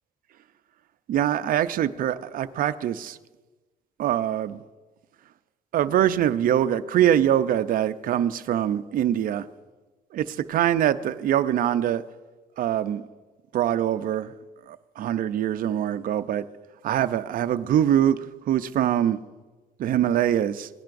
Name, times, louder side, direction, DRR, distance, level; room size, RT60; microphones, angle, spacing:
voice 1, 1.1-3.2 4.0-4.6 5.7-9.5 10.1-12.0 12.6-13.0 13.5-14.3 14.7-16.4 16.8-18.2 18.4-19.2 19.8-20.7, right 11 dB, 55° right, 12 dB, 0.5 m, -23 dB
18.0 x 10.5 x 2.6 m, 1.2 s
cardioid pair, 110°, 17 cm